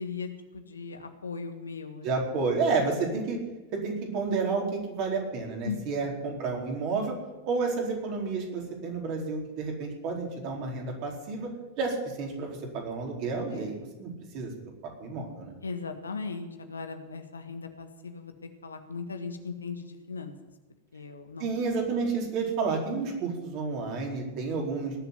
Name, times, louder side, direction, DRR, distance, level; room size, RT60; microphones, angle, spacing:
voice 1, 0.0-2.4 5.6-6.2 13.5-13.7 15.6-18.3 18.6-20.4 20.9-21.5, left 5 dB, 75° left, 7 dB, 1.5 m, -38 dB
voice 2, 2.0-3.4 3.7-7.2 7.5-11.5 11.8-14.5 15.0-15.5 21.4-24.9, right 4 dB, 40° right, 0 dB, 4.4 m, -30 dB
19.0 x 7.5 x 9.4 m, 1.1 s
figure-of-eight pair, 90°, 0 cm